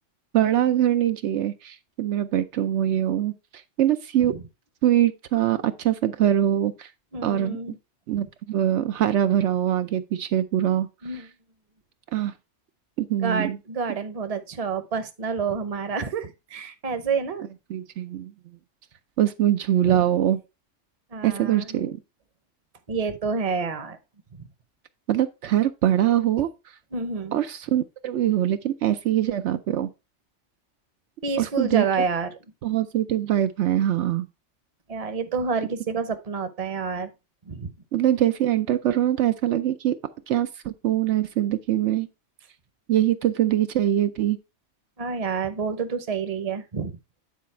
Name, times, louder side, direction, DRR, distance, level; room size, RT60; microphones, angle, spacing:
voice 1, 0.3-4.3 4.8-6.9 7.2-7.8 8.1-10.9 11.1-11.2 12.1-12.3 13.0-13.6 17.7-18.3 19.2-20.4 21.2-22.0 25.1-26.5 27.3-29.9 31.4-31.8 32.6-34.3 37.9-40.0 40.3-42.1 42.9-44.4, right 11 dB, 75° right, 0.9 m, -23 dB
voice 2, 7.1-7.7 8.1-8.2 11.0-11.3 13.2-17.4 19.8-20.1 21.1-21.6 22.9-24.0 26.9-27.4 31.2-32.4 34.9-37.1 37.4-37.7 45.0-47.0, right 5 dB, 35° right, 0.8 m, -28 dB
9.5 x 4.1 x 4.3 m
omnidirectional pair, 1.2 m